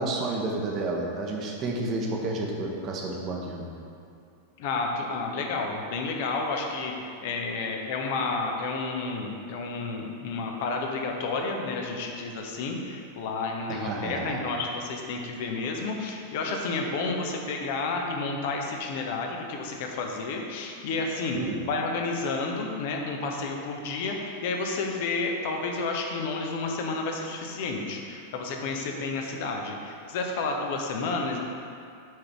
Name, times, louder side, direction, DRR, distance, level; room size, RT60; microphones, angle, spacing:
voice 1, 0.0-3.7 13.7-14.4 21.3-21.6, right 2 dB, 35° right, 0 dB, 1.0 m, -30 dB
voice 2, 4.6-21.4 21.7-31.4, left 3 dB, 50° left, 2 dB, 0.9 m, -31 dB
7.3 x 3.9 x 4.7 m, 2.5 s
figure-of-eight pair, 90°, 0 cm